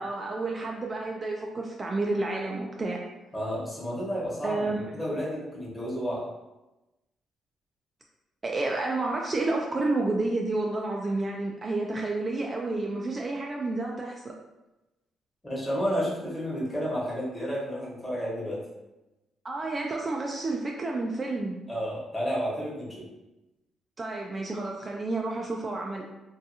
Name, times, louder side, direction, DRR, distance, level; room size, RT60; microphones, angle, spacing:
voice 1, 0.0-3.0 4.4-4.8 8.4-14.2 19.4-21.6 24.0-26.0, right 2 dB, 30° right, -1 dB, 0.3 m, -30 dB
voice 2, 3.3-6.3 15.4-18.6 21.7-23.1, equal, 15° left, -6 dB, 1.1 m, -31 dB
2.6 x 2.3 x 2.7 m, 1.0 s
cardioid pair, 90°, 0 cm